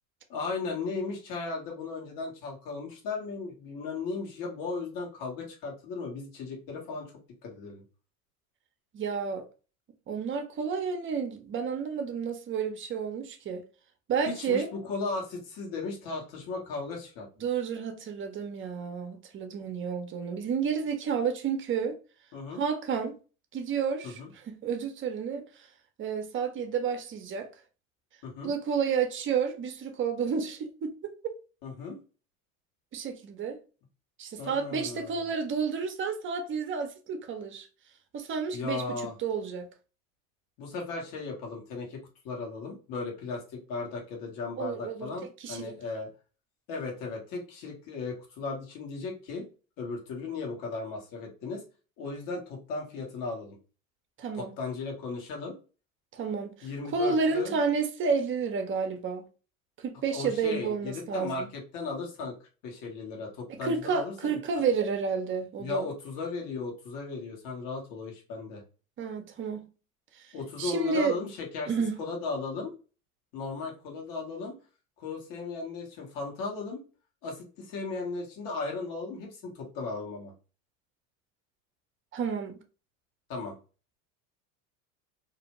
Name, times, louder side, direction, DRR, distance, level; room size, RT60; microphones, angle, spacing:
voice 1, 0.3-7.1 7.4-7.8 14.2-17.3 22.3-22.6 24.0-24.3 28.2-28.5 31.6-32.0 34.4-35.3 38.5-39.1 40.6-46.1 46.7-49.5 49.8-51.6 52.0-53.6 54.3-55.5 56.6-57.6 60.1-62.3 62.6-64.4 65.6-68.6 70.3-71.7 72.0-72.7 73.3-74.5 75.0-76.8 77.2-80.3 83.3-83.5, left 4 dB, 55° left, 1.3 m, -36 dB
voice 2, 8.9-9.5 10.1-13.6 14.1-14.7 17.4-22.0 22.5-23.2 23.5-24.2 24.5-25.4 26.0-27.5 28.4-31.3 32.9-33.6 34.2-37.7 38.1-38.8 39.2-39.7 44.6-45.1 45.4-45.8 54.2-54.5 56.1-59.3 59.8-61.5 63.5-65.9 69.0-69.7 70.6-71.2 71.7-72.0 82.1-82.6, right 6 dB, 30° right, 0.6 m, -30 dB
2.6 x 2.1 x 3.0 m
hypercardioid pair, 85°, 41 cm